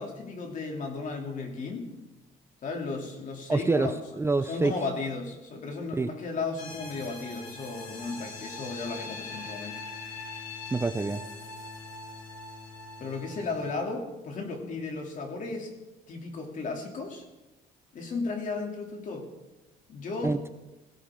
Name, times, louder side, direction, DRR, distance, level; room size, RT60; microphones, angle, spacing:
voice 1, 0.0-1.9 2.6-3.9 4.5-9.8 13.0-15.7 16.1-17.2 17.9-19.3 19.9-20.4, left 3 dB, 50° left, 2 dB, 2.9 m, -35 dB
voice 2, 3.5-4.7 6.0-6.1 10.7-11.2 20.2-20.5, right 3 dB, 15° right, 9 dB, 0.6 m, -26 dB
sound 1, 6.6-13.7, left 3 dB, 85° left, 6.0 m, -42 dB
18.0 x 16.5 x 3.8 m, 1.1 s
cardioid pair, 110°, 17 cm